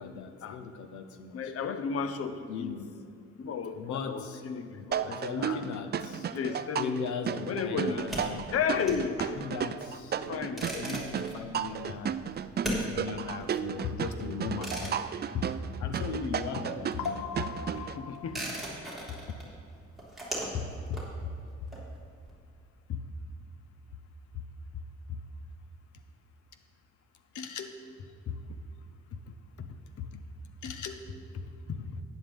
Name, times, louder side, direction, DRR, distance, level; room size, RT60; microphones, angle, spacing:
voice 1, 0.0-1.5 2.5-2.9 3.8-4.4 5.1-6.3 6.8-8.5 9.4-12.2 12.7-15.1 15.8-18.4 27.3-27.8 30.6-31.2, left 6 dB, 75° left, 7 dB, 0.9 m, -38 dB
voice 2, 1.3-2.8 3.4-5.6 6.3-7.0 7.5-8.1 8.5-9.4 10.2-10.7 17.7-18.5 20.5-21.0 22.9-23.0 31.8-32.0, left 6 dB, 50° left, 9 dB, 0.7 m, -33 dB
sound 1, 4.9-18.0, right 8 dB, 35° right, 0.4 m, -34 dB
sound 2, 8.0-16.3 16.5-22.3, right 1 dB, ahead, 2.8 m, -40 dB
11.5 x 9.4 x 3.6 m, 2.4 s
cardioid pair, 90°, 30 cm